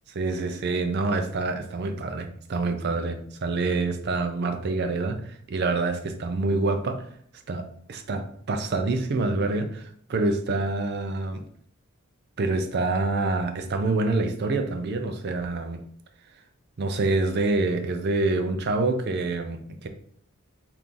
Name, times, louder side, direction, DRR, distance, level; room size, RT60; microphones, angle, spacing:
voice 1, 0.1-7.1 7.5-11.4 12.4-15.8 16.8-19.9, right 3 dB, 50° right, 7 dB, 0.4 m, -26 dB
3.0 x 2.5 x 3.6 m, 0.64 s
head